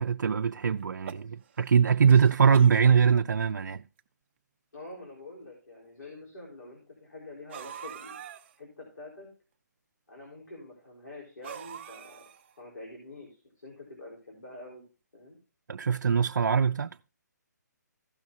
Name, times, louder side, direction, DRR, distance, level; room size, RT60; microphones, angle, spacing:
voice 1, 0.0-3.8 15.7-16.9, right 6 dB, 90° right, 0.4 m, -22 dB
sound 1, 0.8-1.7 2.1-2.8 3.7-3.8 4.0-4.1 5.0-5.1 7.5-8.5 11.4-12.6, right 9 dB, 35° right, 0.6 m, -44 dB
voice 2, 4.7-8.2 8.6-9.3 10.1-12.2 12.6-14.8 15.1-15.4, left 2 dB, 90° left, 4.2 m, -46 dB
16.0 x 6.1 x 2.7 m
hypercardioid pair, 160°, 10 cm